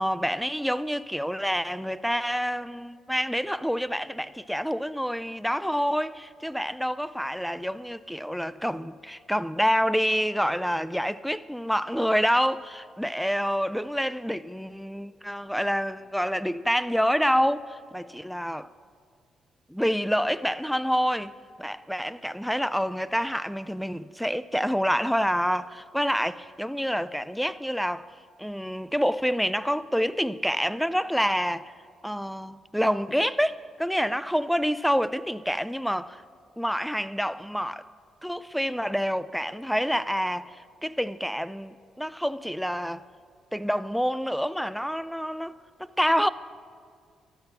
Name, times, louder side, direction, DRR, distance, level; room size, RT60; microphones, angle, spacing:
voice 1, 0.0-18.7 19.7-21.3 21.6-28.1 28.4-31.7 32.0-36.2 36.6-37.8 38.2-43.0 43.5-45.5 46.0-46.3, equal, ahead, 0.4 m, -27 dB
13.5 x 11.0 x 6.8 m
cardioid pair, 90°, 0 cm